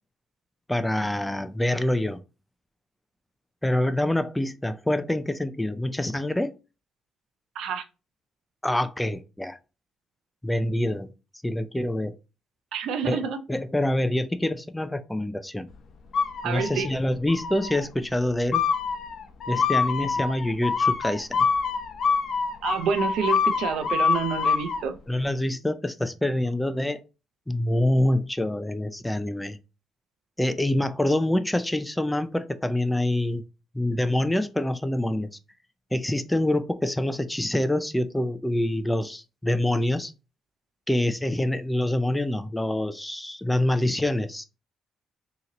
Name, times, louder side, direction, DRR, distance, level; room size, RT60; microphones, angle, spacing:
voice 1, 0.7-2.2 3.6-6.6 8.6-9.6 10.4-11.1 11.4-12.2 13.0-15.7 16.4-18.6 19.5-21.5 25.1-27.0 27.5-29.6 30.4-33.4 33.7-35.3 35.9-40.1 40.9-44.4, left 1 dB, 10° left, 0.4 m, -26 dB
voice 2, 12.7-13.4 16.4-16.9 22.6-25.0, right 6 dB, 80° right, 0.6 m, -28 dB
sound 1, 16.1-16.9 17.3-17.8 18.5-24.8, left 5 dB, 60° left, 0.7 m, -26 dB
3.8 x 2.9 x 2.9 m
cardioid pair, 90°, 0 cm